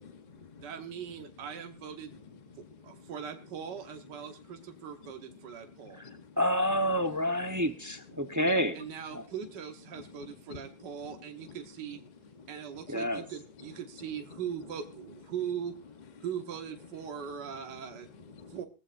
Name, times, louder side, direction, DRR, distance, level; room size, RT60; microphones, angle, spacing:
voice 1, 0.0-0.7 2.1-2.2 2.5-3.1 5.0-6.4 8.2-8.6 9.9-10.7 11.0-11.2 11.4-11.6 12.3-12.9 13.1-13.3 17.6-18.6, left 5 dB, 35° left, 8 dB, 0.8 m, -51 dB
voice 2, 0.6-2.2 2.8-6.0 8.8-12.0 12.5-15.7 16.2-18.1 18.5-18.7, right 8 dB, 65° right, 5 dB, 1.9 m, -40 dB
voice 3, 6.4-8.8 9.1-9.2 12.9-13.2, equal, 15° right, 6 dB, 0.7 m, -28 dB
19.0 x 14.5 x 2.6 m, 0.30 s
omnidirectional pair, 2.0 m